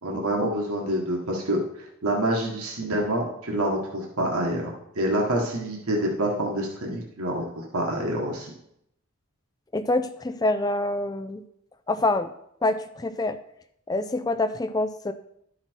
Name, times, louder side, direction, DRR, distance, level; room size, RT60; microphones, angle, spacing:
voice 1, 0.0-1.6 2.0-8.5, right 1 dB, 80° right, -1 dB, 1.5 m, -27 dB
voice 2, 9.7-11.4 11.9-12.3 12.6-13.4 13.9-15.1, left 2 dB, 15° left, 11 dB, 0.3 m, -26 dB
11.0 x 5.7 x 4.5 m, 0.75 s
head